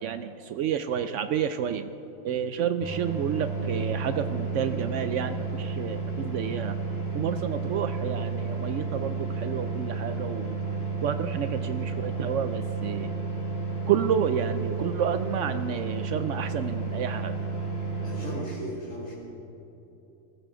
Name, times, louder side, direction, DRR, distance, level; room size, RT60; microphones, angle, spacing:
voice 1, 0.0-1.9 2.2-6.8 7.1-10.6 11.0-13.1 13.9-17.4, right 8 dB, 75° right, 10 dB, 0.9 m, -30 dB
sound 1, 2.8-18.4, right 4 dB, 15° right, 3.6 m, -32 dB
voice 2, 18.0-19.1, left 1 dB, 80° left, -7 dB, 2.9 m, -36 dB
21.5 x 14.0 x 3.8 m, 2.9 s
omnidirectional pair, 1.3 m